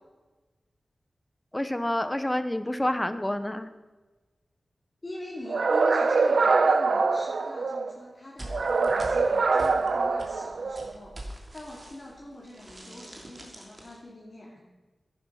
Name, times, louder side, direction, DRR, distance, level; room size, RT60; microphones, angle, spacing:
voice 1, 1.5-3.7, left 1 dB, 15° left, 11 dB, 0.8 m, -28 dB
voice 2, 5.0-14.6, left 1 dB, 40° left, -5 dB, 2.7 m, -43 dB
sound 1, 5.5-7.9 8.5-10.9, right 4 dB, 80° right, 0.8 m, -24 dB
sound 2, 8.4-12.2 12.4-14.0, right 1 dB, 40° right, 2.8 m, -44 dB
11.0 x 10.5 x 5.6 m, 1.2 s
wide cardioid pair, 75°, 0 cm